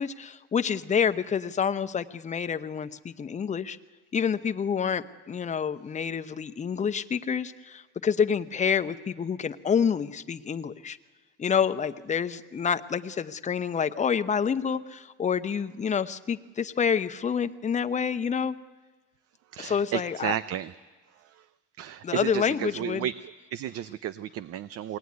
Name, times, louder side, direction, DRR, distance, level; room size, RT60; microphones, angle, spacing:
voice 1, 0.0-3.8 4.1-11.0 11.4-18.6 19.6-20.3 22.0-23.1, left 7 dB, 25° left, 10 dB, 0.8 m, -28 dB
voice 2, 19.5-20.7 21.8-22.5 22.8-23.1 23.5-25.0, right 11 dB, 55° right, 14 dB, 0.6 m, -32 dB
22.0 x 17.5 x 9.6 m, 1.3 s
cardioid pair, 115°, 29 cm